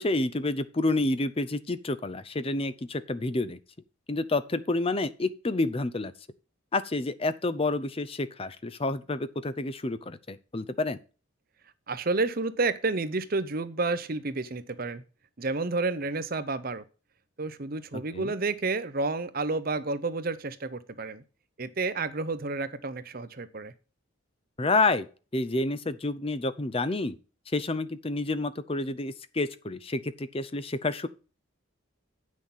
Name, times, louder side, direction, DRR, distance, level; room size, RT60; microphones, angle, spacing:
voice 1, 0.0-3.6 4.1-6.1 6.7-11.0 17.9-18.4 24.6-25.1 25.3-27.2 27.5-31.1, left 2 dB, 25° left, 0.6 m, -29 dB
voice 2, 11.9-15.0 15.4-16.8 17.4-21.2 21.6-23.7, right 3 dB, 45° right, 0.7 m, -30 dB
8.6 x 6.3 x 5.5 m
head